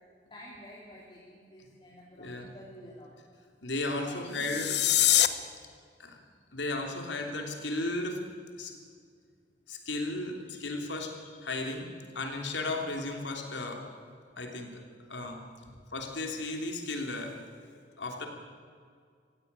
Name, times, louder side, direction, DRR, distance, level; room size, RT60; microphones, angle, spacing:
voice 1, 0.3-3.1 4.0-4.7 15.6-15.8, equal, 30° left, -5 dB, 3.6 m, -49 dB
voice 2, 2.2-2.5 3.6-4.8 6.0-6.2 6.5-8.2 8.6-8.7 9.7-11.9 12.1-13.8 14.4-14.8 15.1-15.4 15.9-17.3 18.0-18.3, left 2 dB, 85° left, 3 dB, 3.2 m, -35 dB
sound 1, 4.3-5.3, left 13 dB, 65° left, 1.0 m, -24 dB
16.5 x 16.5 x 9.7 m, 2.1 s
head